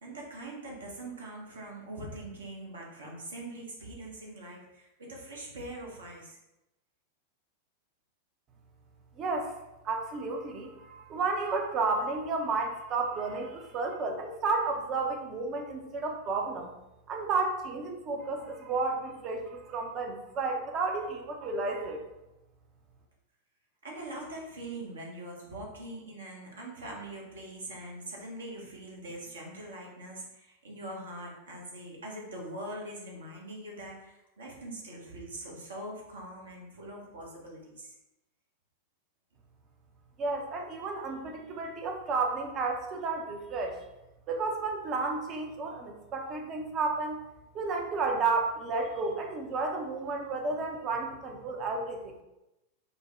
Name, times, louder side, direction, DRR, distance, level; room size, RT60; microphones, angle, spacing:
voice 1, 0.0-6.4 23.8-38.0, right 1 dB, 65° right, -2 dB, 1.0 m, -42 dB
voice 2, 9.2-9.6 9.8-16.7 17.1-22.1 40.2-43.8 44.3-47.2 47.5-52.2, right 3 dB, 30° right, 3 dB, 0.6 m, -32 dB
5.1 x 2.1 x 3.1 m, 0.95 s
figure-of-eight pair, 90°, 0 cm